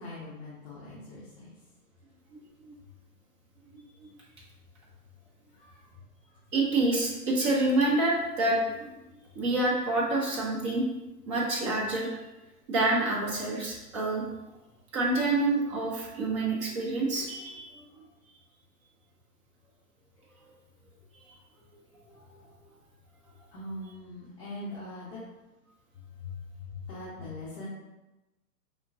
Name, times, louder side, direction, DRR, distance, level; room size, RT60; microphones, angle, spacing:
voice 1, 0.0-1.5 5.5-5.9 6.2-6.4 23.5-25.2 26.2-26.3 26.6-27.7, left 2 dB, 25° left, -9 dB, 0.9 m, -42 dB
voice 2, 6.5-8.8 9.3-10.8 11.3-12.1 12.7-14.3 14.9-17.8 21.3-21.4 22.2-22.3, right 2 dB, 20° right, -4 dB, 0.7 m, -27 dB
5.1 x 3.5 x 2.6 m, 1.0 s
hypercardioid pair, 150°, 47 cm